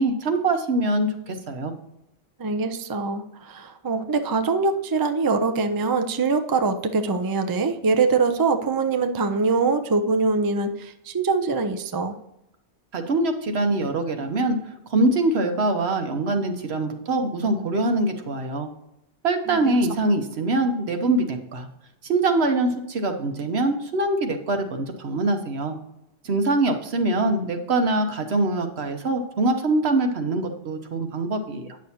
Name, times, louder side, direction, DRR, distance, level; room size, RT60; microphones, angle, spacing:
voice 1, 0.0-1.7 12.9-14.6 14.9-18.7 19.2-21.7 22.0-25.7 26.2-31.8, right 2 dB, 70° right, 6 dB, 1.1 m, -23 dB
voice 2, 2.4-12.1 19.5-19.6, right 4 dB, 35° right, 7 dB, 0.4 m, -23 dB
9.3 x 6.4 x 2.8 m, 0.88 s
omnidirectional pair, 1.2 m